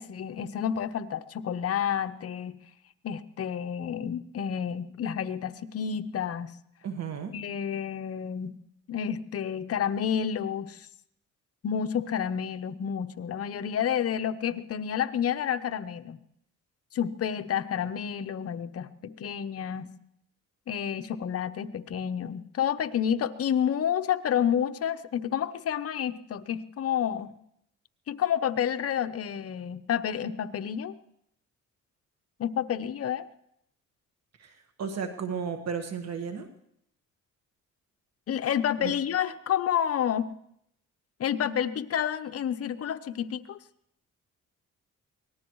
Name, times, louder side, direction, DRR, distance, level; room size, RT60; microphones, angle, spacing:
voice 1, 0.0-2.6 3.0-6.5 7.3-8.6 8.9-10.9 11.6-16.2 16.9-20.0 20.7-27.3 28.1-30.9 32.4-33.2 38.3-40.3 41.2-43.6, left 9 dB, 50° left, 9 dB, 0.9 m, -30 dB
voice 2, 6.8-7.3 34.4-36.5 38.8-38.9, right 6 dB, 60° right, 6 dB, 1.6 m, -34 dB
24.5 x 18.5 x 3.1 m, 0.75 s
cardioid pair, 90°, 30 cm